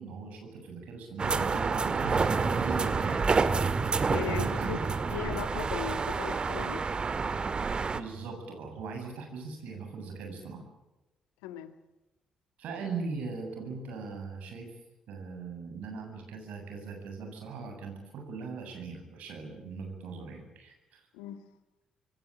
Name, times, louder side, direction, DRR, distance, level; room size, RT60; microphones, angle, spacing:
voice 1, 0.0-3.5 4.3-4.9 7.9-10.6 12.6-14.7 15.1-21.0, right 4 dB, 65° right, 4 dB, 8.0 m, -40 dB
sound 1, 1.2-8.0, right 4 dB, 40° right, 1.7 m, -28 dB
voice 2, 4.1-4.8 5.1-6.8 11.4-11.7 21.1-21.4, left 11 dB, 75° left, 11 dB, 1.7 m, -37 dB
27.5 x 21.5 x 9.0 m, 1.0 s
figure-of-eight pair, 40°, 3 cm